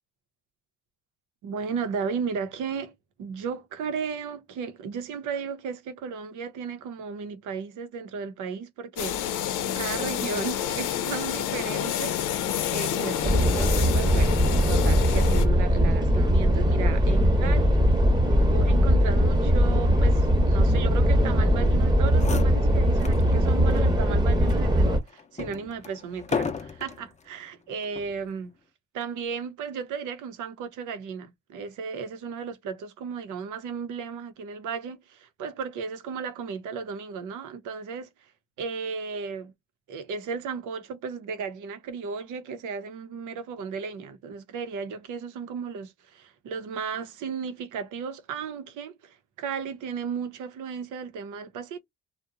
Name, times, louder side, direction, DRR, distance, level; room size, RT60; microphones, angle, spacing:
voice 1, 1.4-12.2 12.7-14.4 14.7-17.8 18.5-28.5 28.9-38.1 38.6-39.5 39.9-51.8, right 6 dB, 80° right, 0.7 m, -35 dB
sound 1, 9.0-15.4, left 10 dB, 80° left, 0.6 m, -29 dB
sound 2, 13.2-25.0, equal, 15° right, 0.8 m, -21 dB
sound 3, 21.8-21.9 22.1-23.3 23.7-23.8 24.5-27.1 27.8-28.2, left 5 dB, 25° left, 0.5 m, -34 dB
2.7 x 2.1 x 2.5 m
cardioid pair, 90°, 30 cm